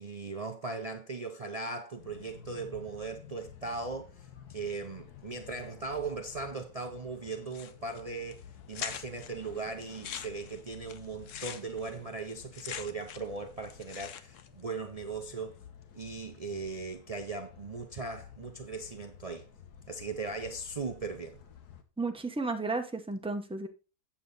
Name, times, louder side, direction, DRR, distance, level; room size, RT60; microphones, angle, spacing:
voice 1, 0.0-15.6 15.9-19.5 19.9-21.4, right 3 dB, 65° right, 0.3 m, -38 dB
sound 1, 2.0-21.8, left 8 dB, 85° left, 1.6 m, -52 dB
sound 2, 7.5-8.0 8.3-8.4 8.7-9.3 9.8-13.4 13.6-14.5, left 9 dB, 60° left, 1.0 m, -42 dB
voice 2, 22.0-23.7, right 3 dB, 5° right, 0.5 m, -33 dB
8.3 x 7.1 x 4.0 m
omnidirectional pair, 1.6 m